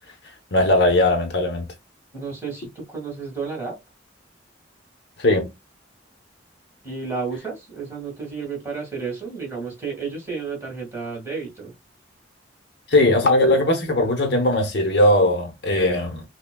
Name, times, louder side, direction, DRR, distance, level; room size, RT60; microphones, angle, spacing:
voice 1, 0.5-1.7 5.2-5.5 12.9-16.2, left 1 dB, 55° left, 0.9 m, -19 dB
voice 2, 2.1-3.8 6.8-11.7, right 5 dB, 15° right, 1.7 m, -32 dB
5.6 x 2.2 x 2.2 m
head